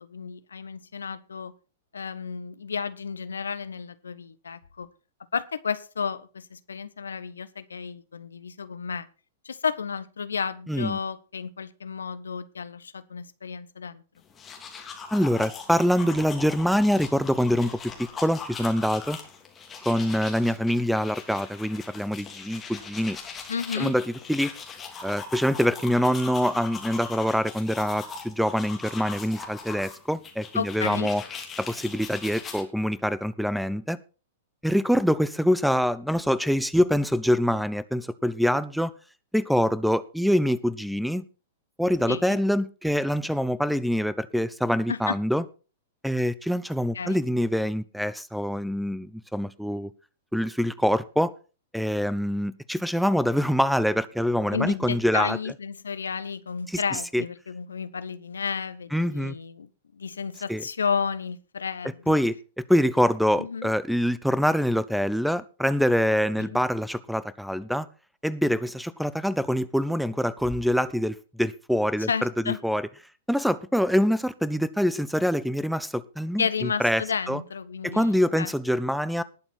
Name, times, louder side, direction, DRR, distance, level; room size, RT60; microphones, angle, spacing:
voice 1, 0.0-1.5 1.9-4.9 5.3-9.1 9.4-14.0 23.5-23.9 30.5-31.1 42.1-42.4 44.9-45.2 46.9-47.2 54.5-62.2 63.4-63.7 66.4-66.6 72.1-72.6 76.4-78.5, left 6 dB, 70° left, 14 dB, 1.0 m, -32 dB
voice 2, 10.7-11.0 15.1-19.2 19.9-23.2 23.8-24.5 25.0-31.2 31.6-34.0 34.6-38.9 39.3-41.2 41.8-45.4 46.0-49.9 50.3-51.3 51.7-55.4 56.7-57.2 58.9-59.3 60.5-60.6 62.1-67.9 68.2-72.9 73.3-77.4 77.8-79.2, equal, ahead, 18 dB, 0.7 m, -25 dB
sound 1, 14.2-32.6, left 5 dB, 20° left, 3.3 m, -40 dB
19.5 x 7.1 x 4.3 m, 0.34 s
figure-of-eight pair, 105°, 0 cm